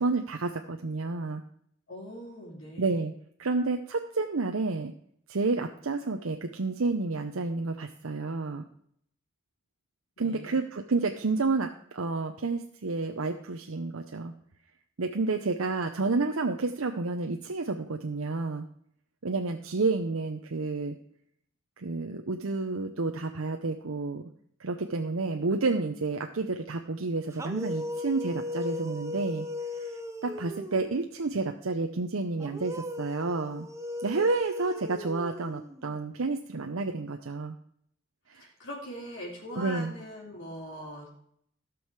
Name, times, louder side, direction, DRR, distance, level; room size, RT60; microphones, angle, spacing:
voice 1, 0.0-1.4 2.8-3.1 3.4-4.9 5.3-8.6 10.2-14.3 15.0-18.7 19.2-21.0 21.8-24.2 24.6-29.5 29.7-33.7 34.0-37.5 38.3-38.5 39.6-39.9, right 3 dB, 85° right, 4 dB, 0.8 m, -30 dB
voice 2, 1.9-2.9 10.2-10.6 38.3-41.1, equal, 65° left, -4 dB, 3.6 m, -41 dB
sound 1, 27.3-31.1 32.4-36.0, left 1 dB, 15° right, 0.8 m, -37 dB
16.0 x 6.3 x 4.8 m, 0.67 s
head